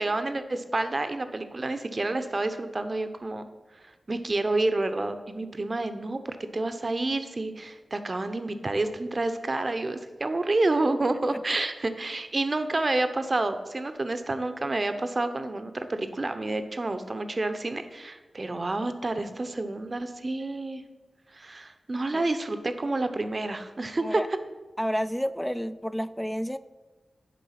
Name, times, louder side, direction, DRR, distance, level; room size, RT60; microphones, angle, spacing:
voice 1, 0.0-3.4 4.1-20.8 21.3-24.2, right 2 dB, 40° right, 9 dB, 0.7 m, -29 dB
voice 2, 24.8-26.6, equal, 5° left, 14 dB, 0.3 m, -30 dB
10.0 x 3.8 x 5.8 m, 1.3 s
wide cardioid pair, 70°, 0 cm